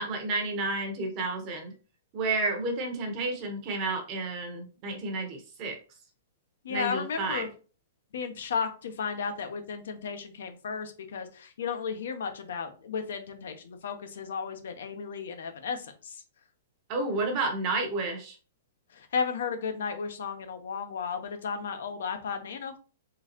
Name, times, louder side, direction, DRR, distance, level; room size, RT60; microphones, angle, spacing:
voice 1, 0.0-1.7 2.1-5.8 6.7-7.5 16.9-18.4, right 3 dB, 25° right, 3 dB, 0.8 m, -31 dB
voice 2, 6.6-7.5 8.1-16.2 18.9-22.8, left 6 dB, 70° left, 7 dB, 0.8 m, -34 dB
3.8 x 3.6 x 2.9 m, 0.37 s
hypercardioid pair, 175°, 0 cm